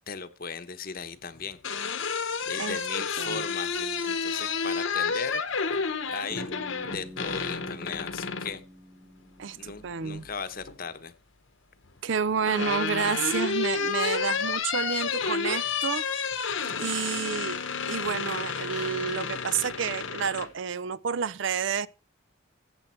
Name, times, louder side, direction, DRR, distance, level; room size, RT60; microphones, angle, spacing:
voice 1, 0.1-1.6 2.5-5.8 6.1-6.5 6.8-8.6 9.6-11.1 16.6-16.7, left 5 dB, 45° left, 0.9 m, -37 dB
sound 1, 1.4-8.6 10.1-10.7 12.0-20.5, left 5 dB, 70° left, 1.2 m, -30 dB
Bass guitar, 6.3-10.3, equal, 15° right, 0.9 m, -47 dB
voice 2, 9.4-10.3 12.0-16.0 16.8-17.6 17.9-21.9, right 7 dB, 60° right, 0.5 m, -30 dB
14.5 x 7.9 x 4.4 m
head